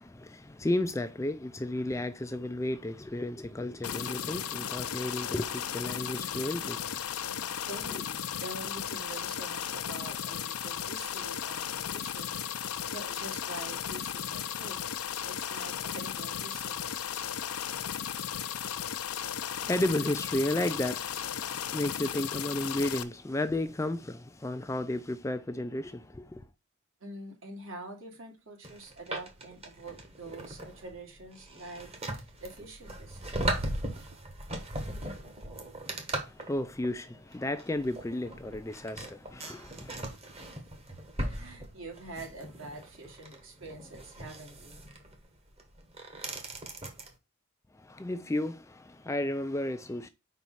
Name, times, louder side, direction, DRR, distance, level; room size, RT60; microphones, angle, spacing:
voice 1, 0.0-7.0 19.5-26.4 36.2-40.0 47.7-50.1, left 1 dB, 15° left, 0.3 m, -33 dB
sound 1, 3.8-23.0, left 9 dB, 85° left, 0.7 m, -35 dB
voice 2, 7.2-16.9 27.0-33.5 41.2-44.8, right 2 dB, 60° right, 2.3 m, -46 dB
sound 2, 28.6-47.1, right 1 dB, 25° right, 1.3 m, -39 dB
5.2 x 4.6 x 5.5 m
head